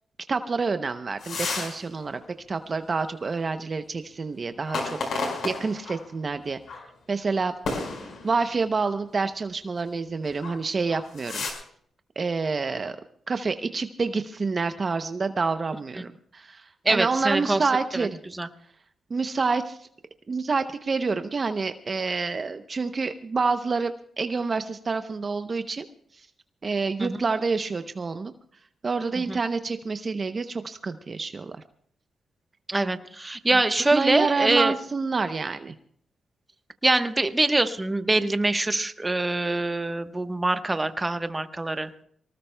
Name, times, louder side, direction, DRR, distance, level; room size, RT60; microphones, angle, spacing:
voice 1, 0.3-2.2 2.5-6.6 7.1-7.6 8.2-11.5 12.2-13.0 13.3-18.2 19.1-19.9 20.3-25.9 26.6-28.3 28.8-31.6 33.9-35.8, right 4 dB, 40° right, 9 dB, 0.7 m, -28 dB
sound 1, 1.2-1.8 2.2-2.3 4.6-6.0 6.7-6.8 7.6-8.5 10.3-10.6 10.9-11.5, left 3 dB, 70° left, 4.8 m, -32 dB
voice 2, 16.8-17.6 18.3-18.5 27.0-27.2 29.1-29.4 32.7-34.7 36.8-41.9, right 2 dB, 20° right, 9 dB, 1.0 m, -24 dB
24.0 x 19.0 x 2.2 m, 0.64 s
cardioid pair, 75°, 0 cm